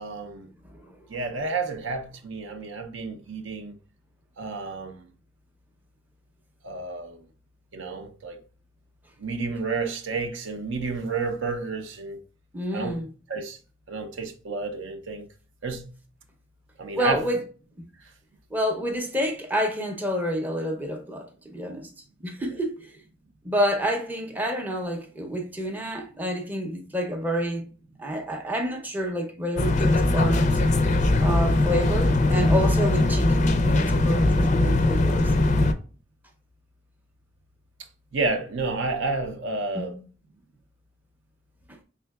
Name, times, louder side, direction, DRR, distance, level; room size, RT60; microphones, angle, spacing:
voice 1, 0.0-0.5 1.1-3.7 4.4-5.1 6.6-7.2 7.7-8.4 9.2-12.2 12.7-13.0 13.3-13.6 13.9-15.3 15.6-15.9 16.8-17.2 22.5-22.6 38.1-40.0, right 3 dB, 65° right, 0.6 m, -30 dB
voice 2, 12.5-13.1 17.0-17.4 18.5-21.9 22.2-22.9 23.4-27.7 28.0-30.5 31.2-35.3 39.7-40.0 41.7-41.8, equal, 10° right, 0.6 m, -28 dB
sound 1, 29.6-35.7, left 2 dB, 35° left, 0.4 m, -21 dB
5.5 x 3.5 x 2.3 m
head